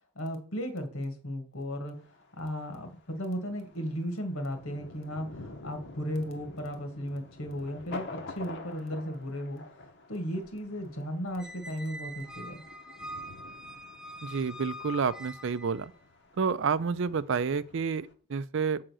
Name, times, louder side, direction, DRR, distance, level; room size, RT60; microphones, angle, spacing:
voice 1, 0.1-2.0 2.4-9.6 10.1-12.6, equal, 70° left, 1.7 m, -35 dB
Thunder, 1.9-18.1, left 2 dB, 50° left, 1.0 m, -48 dB
Squeak, 11.4-15.9, left 1 dB, 5° right, 0.4 m, -44 dB
voice 2, 14.2-15.9 16.4-18.8, right 5 dB, 60° right, 0.4 m, -29 dB
7.7 x 3.8 x 6.2 m
head